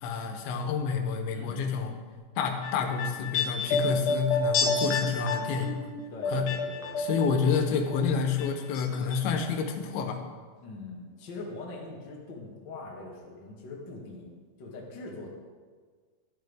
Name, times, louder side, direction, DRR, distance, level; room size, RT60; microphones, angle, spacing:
voice 1, 0.0-2.0 2.4-5.9 6.3-6.5 7.0-10.2, left 6 dB, 85° left, 5 dB, 3.3 m, -29 dB
sound 1, 2.4-7.6 7.9-8.8 9.1-9.2, left 3 dB, 70° left, 2.7 m, -29 dB
voice 2, 6.1-7.2 10.6-14.3 14.6-15.3, left 3 dB, 50° left, -2 dB, 1.3 m, -42 dB
12.0 x 11.5 x 3.6 m, 1.5 s
omnidirectional pair, 5.1 m